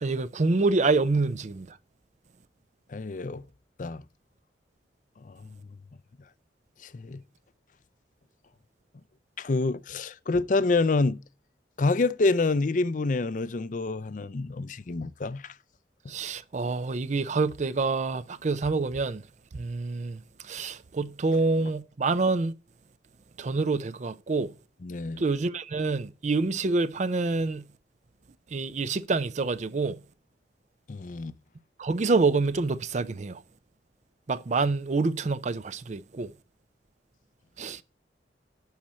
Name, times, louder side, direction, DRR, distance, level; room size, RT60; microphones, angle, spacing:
voice 1, 0.0-1.8 16.1-19.2 19.5-22.5 23.4-24.5 25.2-27.7 28.5-30.0 31.8-33.4 34.3-36.3 37.6-37.8, right 3 dB, 40° right, 0.5 m, -27 dB
voice 2, 2.9-3.4 3.8-4.0 5.2-5.5 6.8-7.2 9.4-11.2 11.8-15.5 24.8-25.2 30.9-31.3, left 3 dB, 45° left, 0.5 m, -27 dB
11.5 x 4.3 x 7.4 m
head